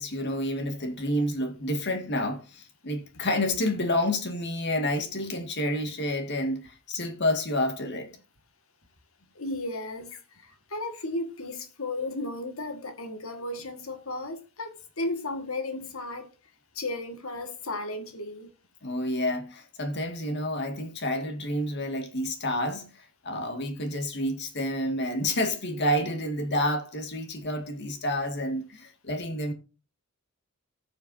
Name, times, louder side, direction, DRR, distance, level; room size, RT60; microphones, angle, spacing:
voice 1, 0.0-8.2 18.8-29.5, left 1 dB, 50° left, 2.1 m, -29 dB
voice 2, 9.4-16.3 16.8-18.5, left 2 dB, 65° left, 1.9 m, -34 dB
17.5 x 7.0 x 2.7 m
head